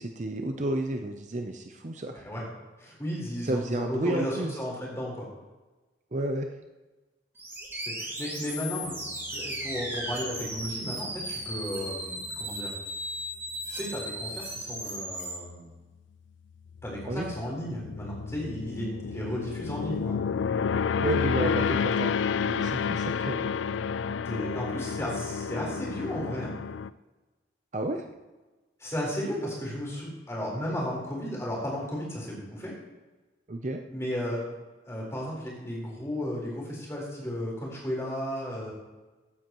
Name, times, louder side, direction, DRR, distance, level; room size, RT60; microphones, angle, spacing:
voice 1, 0.0-2.2 3.4-4.5 6.1-6.5 17.1-17.3 21.0-22.1 22.4-23.4 27.7-28.0 33.5-33.8, right 1 dB, 40° right, 5 dB, 0.6 m, -31 dB
voice 2, 2.1-2.4 2.8-5.3 7.9-12.7 13.7-15.7 16.8-20.1 24.3-26.5 28.8-32.7 33.9-34.5 34.9-38.7, equal, 15° left, -4 dB, 4.1 m, -34 dB
sound 1, 7.4-15.4, right 1 dB, 15° right, 2.6 m, -36 dB
sound 2, 8.9-9.3 9.7-9.8 16.8-26.9, left 6 dB, 80° left, 0.4 m, -30 dB
15.5 x 9.8 x 3.0 m, 1.2 s
head